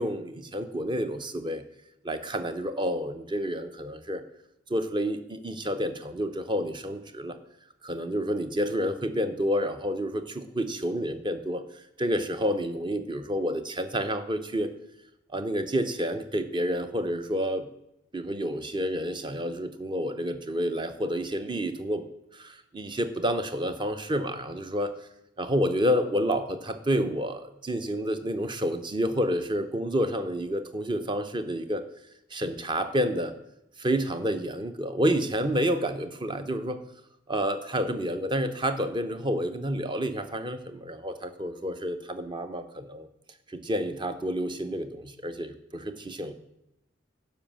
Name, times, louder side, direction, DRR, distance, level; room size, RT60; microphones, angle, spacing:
voice 1, 0.0-1.6 2.0-4.2 4.7-7.4 7.8-14.7 15.3-17.7 18.1-22.0 22.3-24.9 25.4-31.8 32.3-33.3 33.8-36.8 37.3-43.1 43.5-46.3, equal, 25° right, 9 dB, 0.8 m, -29 dB
10.5 x 5.5 x 7.3 m, 0.84 s
head